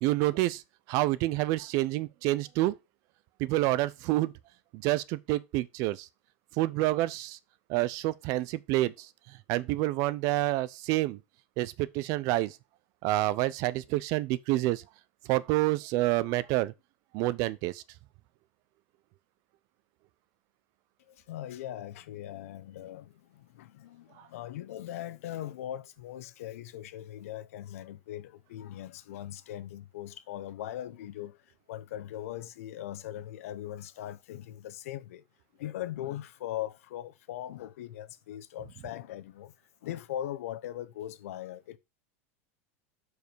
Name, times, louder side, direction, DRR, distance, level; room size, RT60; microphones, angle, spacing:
voice 1, 0.0-0.6 0.9-2.8 3.4-4.3 4.7-6.1 6.5-7.4 7.7-11.2 11.6-12.6 13.0-14.8 15.2-16.7 17.1-17.8 24.2-24.3, right 17 dB, 50° right, 0.6 m, -28 dB
voice 2, 21.1-35.2 35.6-39.5 39.8-41.8, left 12 dB, 85° left, 0.9 m, -40 dB
7.1 x 4.7 x 4.6 m
supercardioid pair, 145°, 8 cm